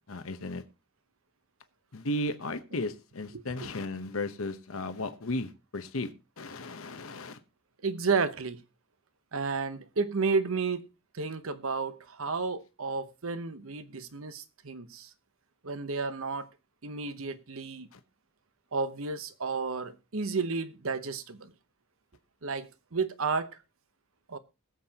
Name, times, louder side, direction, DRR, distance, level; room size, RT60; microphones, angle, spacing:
voice 1, 0.1-0.6 1.9-7.4 17.9-18.0, left 2 dB, 70° left, 0.9 m, -35 dB
voice 2, 3.3-3.7 7.8-8.6 9.3-10.9 11.1-15.1 15.6-16.5 16.8-17.9 18.7-21.5 22.4-23.6 24.3-24.4, right 4 dB, 70° right, 0.9 m, -32 dB
21.0 x 7.5 x 2.9 m
head